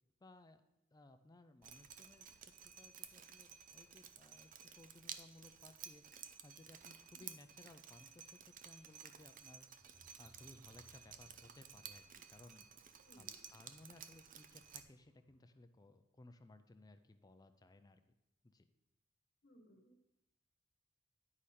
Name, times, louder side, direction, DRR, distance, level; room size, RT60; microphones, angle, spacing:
voice 1, 0.2-0.6 0.9-2.3 2.6-6.0 6.4-9.7 10.2-12.7 13.2-18.0 18.4-18.7, left 2 dB, 20° left, 9 dB, 0.4 m, -61 dB
Drip, 1.6-14.8, right 8 dB, 45° right, 0.5 m, -54 dB
sound 1, 9.8-15.5, equal, 15° right, 1.6 m, -73 dB
voice 2, 13.0-13.4 19.4-20.0, equal, 55° left, 1 dB, 1.1 m, -64 dB
9.9 x 5.0 x 4.2 m, 0.86 s
head